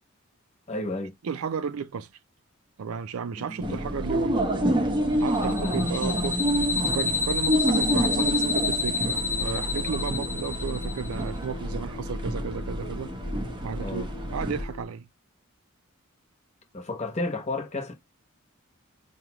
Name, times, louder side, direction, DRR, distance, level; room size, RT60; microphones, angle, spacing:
voice 1, 0.7-1.1 3.4-3.8 5.4-5.8 13.8-14.1 16.7-17.9, left 2 dB, 35° left, 1.0 m, -32 dB
voice 2, 1.2-2.1 2.8-4.5 5.2-6.4 6.9-13.1 13.6-15.1, right 6 dB, 85° right, 0.4 m, -33 dB
sound 1, 3.6-14.6, right 1 dB, 25° right, 0.7 m, -28 dB
sound 2, 5.3-11.2, left 4 dB, 15° left, 0.7 m, -29 dB
sound 3, 9.1-14.9, left 1 dB, 75° left, 0.9 m, -40 dB
4.9 x 2.3 x 2.9 m
head